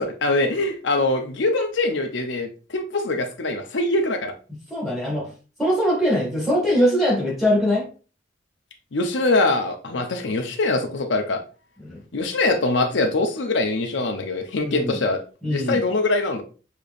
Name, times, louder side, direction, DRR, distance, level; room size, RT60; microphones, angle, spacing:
voice 1, 0.0-4.3 8.9-11.4 12.1-15.2 15.4-16.4, left 2 dB, 85° left, 4 dB, 0.7 m, -23 dB
voice 2, 4.7-5.3 5.6-7.9 11.8-12.0 14.6-15.0 15.4-15.8, equal, ahead, -3 dB, 1.8 m, -22 dB
6.6 x 3.0 x 2.5 m, 0.36 s
head